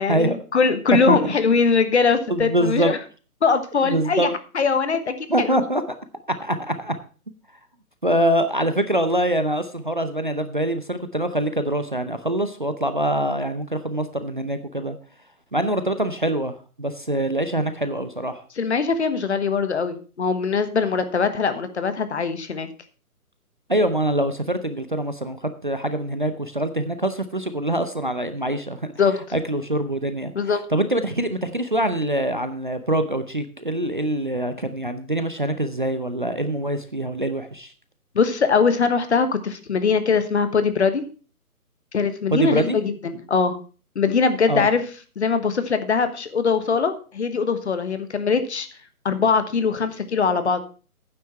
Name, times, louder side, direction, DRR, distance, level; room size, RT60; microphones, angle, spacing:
voice 1, 0.0-3.0 3.4-5.6 18.6-22.7 29.0-29.2 30.3-30.6 38.1-41.0 41.9-43.6 43.9-44.8 45.2-48.7 49.0-50.6, left 5 dB, 45° left, 10 dB, 1.4 m, -21 dB
voice 2, 2.3-2.9 3.8-4.3 5.3-6.0 6.4-6.9 8.0-15.0 15.5-18.4 23.7-28.9 29.3-30.3 30.7-37.7 42.3-42.8 44.5-44.7, right 1 dB, 35° right, 10 dB, 0.5 m, -24 dB
9.4 x 7.6 x 5.5 m, 0.37 s
hypercardioid pair, 170°, 45 cm